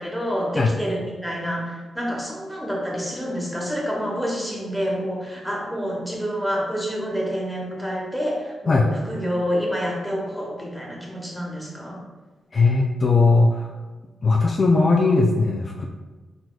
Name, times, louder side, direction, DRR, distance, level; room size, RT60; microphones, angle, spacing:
voice 1, 0.0-12.0, equal, ahead, -2 dB, 1.1 m, -28 dB
voice 2, 12.5-13.7 14.2-15.9, left 3 dB, 40° left, 0 dB, 0.4 m, -18 dB
4.5 x 4.1 x 2.3 m, 1.3 s
cardioid pair, 85°, 0 cm